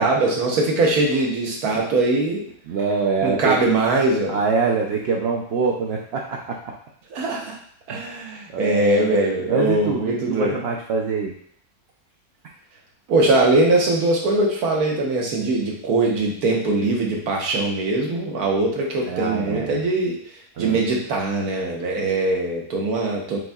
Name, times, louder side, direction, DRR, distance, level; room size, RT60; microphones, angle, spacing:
voice 1, 0.0-2.4 3.2-4.3 7.1-7.5 7.9-10.5 13.1-20.2 20.6-23.4, right 2 dB, 80° right, -1 dB, 1.5 m, -21 dB
voice 2, 2.7-3.6 4.3-6.7 7.9-8.0 8.5-11.3 19.1-19.9 20.6-20.8, right 5 dB, 65° right, -1 dB, 0.6 m, -25 dB
7.6 x 2.7 x 2.3 m, 0.64 s
omnidirectional pair, 1.6 m